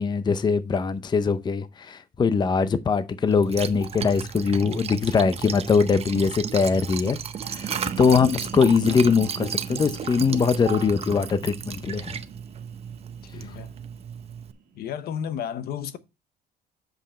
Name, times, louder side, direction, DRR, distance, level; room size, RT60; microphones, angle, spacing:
voice 1, 0.0-7.2 7.5-7.7 8.0-12.1, left 5 dB, 25° left, 0.6 m, -22 dB
Liquid, 3.3-14.5, right 7 dB, 35° right, 0.7 m, -34 dB
sound 1, 7.2-14.8, right 6 dB, 55° right, 1.7 m, -42 dB
voice 2, 13.3-13.7 14.7-16.0, left 8 dB, 65° left, 0.8 m, -32 dB
7.9 x 5.3 x 4.2 m
cardioid pair, 110°, 17 cm